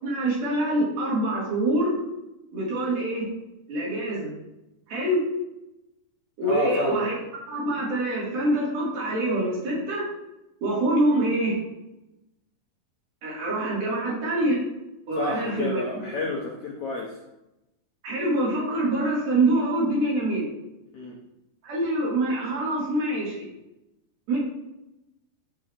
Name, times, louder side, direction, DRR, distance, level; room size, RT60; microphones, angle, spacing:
voice 1, 0.0-2.0 2.5-3.2 3.7-4.3 4.9-5.2 6.4-7.2 7.5-10.0 10.6-11.5 13.2-14.6 15.1-15.8 18.0-20.5 21.6-23.4 24.3-24.4, right 1 dB, 85° right, -6 dB, 4.7 m, -25 dB
voice 2, 6.4-7.1 15.2-17.2 20.9-21.2, left 1 dB, 65° left, -2 dB, 1.5 m, -30 dB
13.0 x 5.5 x 3.0 m, 0.93 s
omnidirectional pair, 4.1 m